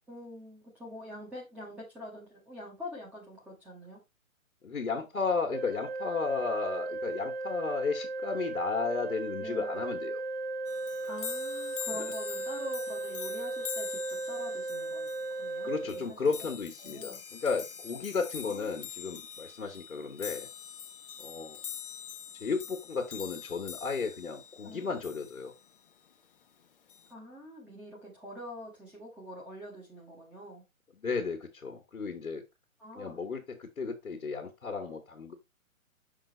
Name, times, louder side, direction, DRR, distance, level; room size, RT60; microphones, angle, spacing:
voice 1, 0.1-4.0 9.4-9.8 11.1-16.2 16.8-17.2 18.4-18.8 24.6-25.0 27.1-30.6 32.8-33.2, equal, 5° right, 0.9 m, -45 dB
voice 2, 4.6-10.2 11.9-12.0 15.6-20.5 21.2-21.6 22.4-25.5 31.0-32.4 32.9-35.3, left 4 dB, 70° left, 1.5 m, -34 dB
Organ, 5.5-16.5, right 2 dB, 50° right, 0.7 m, -36 dB
sound 1, 10.7-25.7 26.9-27.1, left 9 dB, 40° left, 0.8 m, -44 dB
6.0 x 3.9 x 4.0 m
figure-of-eight pair, 135°, 42 cm